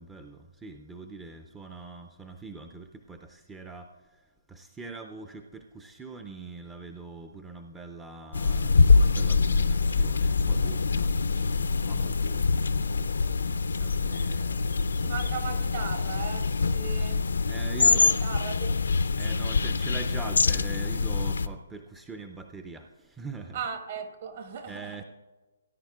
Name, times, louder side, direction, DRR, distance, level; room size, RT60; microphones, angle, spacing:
voice 1, 0.0-4.2 4.5-15.1 17.5-18.2 19.2-23.6 24.7-25.0, right 4 dB, 10° right, 0.4 m, -43 dB
sound 1, 8.3-21.5, left 4 dB, 85° left, 0.5 m, -25 dB
voice 2, 15.0-17.3 17.8-18.7 23.5-25.0, right 6 dB, 50° right, 1.3 m, -37 dB
17.5 x 10.0 x 2.4 m
hypercardioid pair, 155°, 0 cm